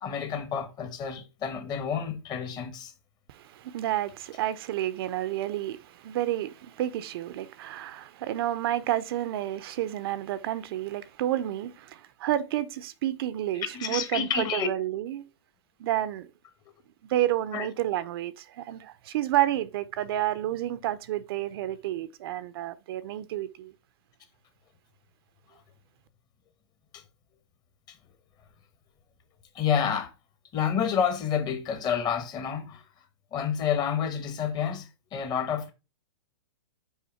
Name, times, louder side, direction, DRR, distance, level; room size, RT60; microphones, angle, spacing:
voice 1, 0.0-2.9 13.5-14.7 17.5-17.7 26.9-27.0 27.9-28.0 29.5-30.1 30.5-32.8 33.3-35.7, left 7 dB, 25° left, 1.2 m, -29 dB
voice 2, 3.3-15.3 15.8-16.3 17.1-23.7, right 13 dB, 50° right, 0.6 m, -30 dB
5.6 x 4.9 x 4.3 m
hypercardioid pair, 125°, 15 cm